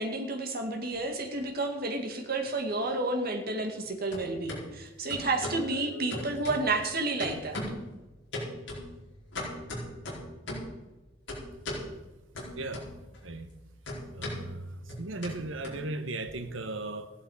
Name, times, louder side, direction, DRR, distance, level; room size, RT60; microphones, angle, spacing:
voice 1, 0.0-7.6, right 2 dB, 50° right, 2.1 m, -31 dB
sound 1, 1.0-1.9 2.2-3.8 4.1-4.6 5.1-5.7 6.1-6.9 7.2-7.9 8.3-10.8 11.3-11.9 12.3-13.2 13.4-16.3, left 1 dB, 65° left, 4.7 m, -39 dB
voice 2, 5.5-6.3 12.6-12.9 13.2-13.5 14.1-17.1, right 2 dB, 75° right, 1.2 m, -37 dB
15.0 x 11.5 x 4.9 m
head